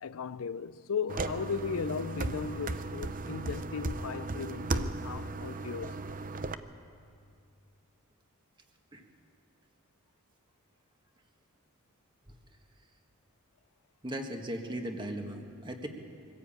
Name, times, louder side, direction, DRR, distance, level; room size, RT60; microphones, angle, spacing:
voice 1, 0.0-6.0, left 6 dB, 70° left, 0.5 m, -36 dB
sound 1, 1.1-6.5, right 3 dB, 40° right, 0.7 m, -36 dB
voice 2, 14.0-15.9, right 1 dB, 20° right, 1.7 m, -37 dB
23.5 x 15.5 x 8.9 m
head